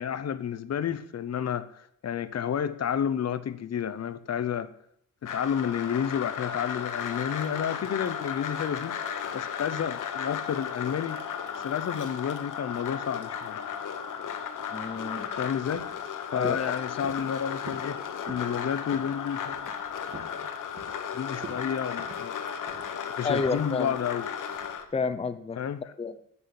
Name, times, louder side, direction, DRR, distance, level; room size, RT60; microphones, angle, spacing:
voice 1, 0.0-4.7 5.2-9.0 9.3-11.2 11.6-13.6 15.4-16.0 16.3-19.7 20.1-20.2 21.1-22.4 23.2-24.3 25.6-25.9, left 8 dB, 50° left, 0.8 m, -31 dB
sound 1, 5.3-24.8, left 7 dB, 70° left, 1.5 m, -35 dB
voice 2, 14.7-15.3 16.4-16.7 23.2-23.9 24.9-25.6 26.0-26.1, left 4 dB, 20° left, 0.7 m, -30 dB
sound 2, 15.3-15.5 15.7-16.1 16.4-16.7 17.0-17.3 17.7-17.9 18.2-18.5 18.9-19.1 19.5-20.4 20.8-21.1 21.4-21.6 22.0-22.9 23.3-23.5 23.9-24.1 24.5-24.8, right 3 dB, 35° right, 2.8 m, -44 dB
9.9 x 8.3 x 9.7 m
wide cardioid pair, 140°, 32 cm